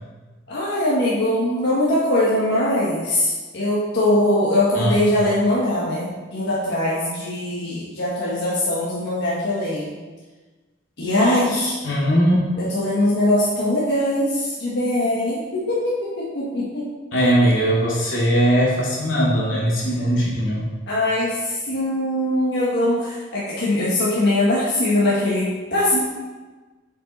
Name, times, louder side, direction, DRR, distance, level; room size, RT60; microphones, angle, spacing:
voice 1, 0.5-9.9 11.0-11.8 12.6-16.9 20.9-26.0, left 1 dB, 60° left, -7 dB, 1.4 m, -21 dB
voice 2, 11.8-12.4 17.1-20.7, equal, 85° left, -6 dB, 2.3 m, -19 dB
7.2 x 5.0 x 4.1 m, 1.3 s
head